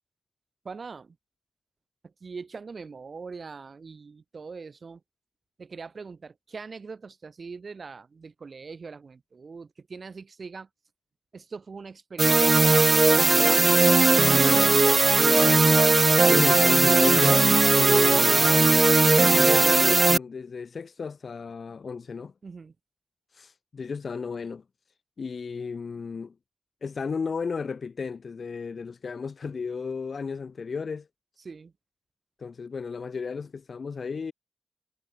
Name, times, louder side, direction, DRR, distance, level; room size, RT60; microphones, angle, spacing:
voice 1, 0.6-1.2 2.0-5.0 5.6-10.7 11.3-14.4 22.4-22.7 31.4-31.7, right 4 dB, 60° right, 7.8 m, -41 dB
sound 1, 12.2-20.2, right 3 dB, 40° right, 0.3 m, -18 dB
voice 2, 16.3-17.4 17.8-18.8 19.2-22.3 23.3-24.6 25.2-26.3 26.8-31.1 32.4-34.3, left 5 dB, 65° left, 5.6 m, -33 dB
wide cardioid pair, 125°, 0 cm